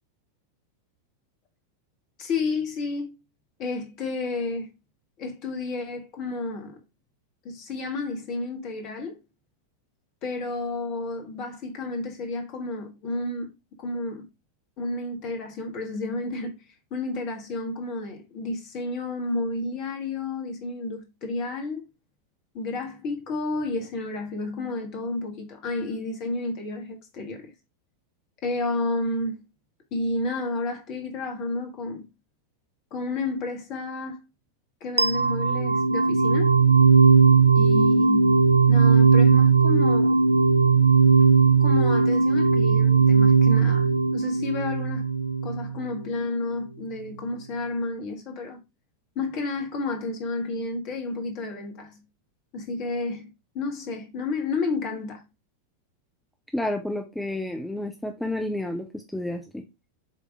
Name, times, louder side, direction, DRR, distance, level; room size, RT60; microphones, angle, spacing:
voice 1, 2.2-3.1 3.6-4.7 5.2-6.8 7.4-9.2 10.2-13.5 13.8-14.3 14.8-16.5 16.9-21.9 22.5-27.5 28.4-29.4 29.9-32.0 32.9-34.2 34.8-36.6 37.6-38.4 38.7-40.2 41.6-45.1 45.4-48.6 49.2-51.9 52.5-55.2, left 3 dB, 40° left, 1.8 m, -31 dB
sound 1, 35.0-45.9, right 5 dB, 80° right, 0.3 m, -18 dB
voice 2, 56.5-59.6, left 1 dB, 5° left, 0.7 m, -30 dB
7.4 x 3.6 x 3.6 m
figure-of-eight pair, 90°, 0 cm